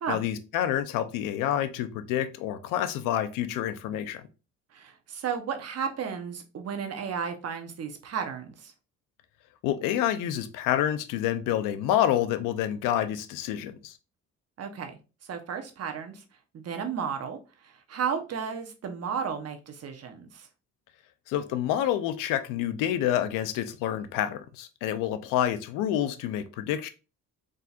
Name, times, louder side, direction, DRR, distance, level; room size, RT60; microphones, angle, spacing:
voice 1, 0.1-4.2 9.6-13.9 21.3-26.9, left 11 dB, 90° left, 0.6 m, -28 dB
voice 2, 4.7-8.7 14.6-16.2 16.5-20.5, right 7 dB, 50° right, 1.0 m, -34 dB
4.2 x 3.8 x 2.4 m
supercardioid pair, 75°, 31 cm